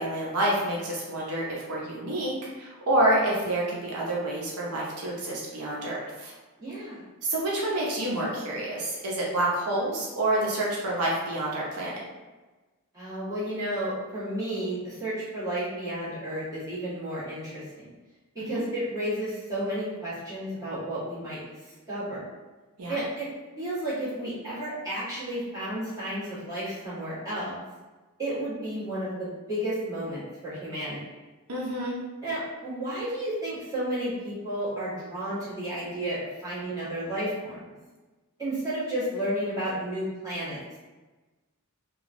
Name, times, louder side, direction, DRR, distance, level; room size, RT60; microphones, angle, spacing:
voice 1, 0.0-6.3 7.2-12.0 18.4-18.6 22.8-23.0 31.5-32.0, right 1 dB, 85° right, -4 dB, 0.6 m, -28 dB
voice 2, 6.6-7.0 12.9-17.9 18.3-21.4 21.9-22.2 22.9-23.3 23.6-27.6 28.2-31.0 32.2-37.7 38.4-40.8, right 1 dB, 15° right, -12 dB, 1.4 m, -32 dB
2.9 x 2.3 x 2.5 m, 1.2 s
head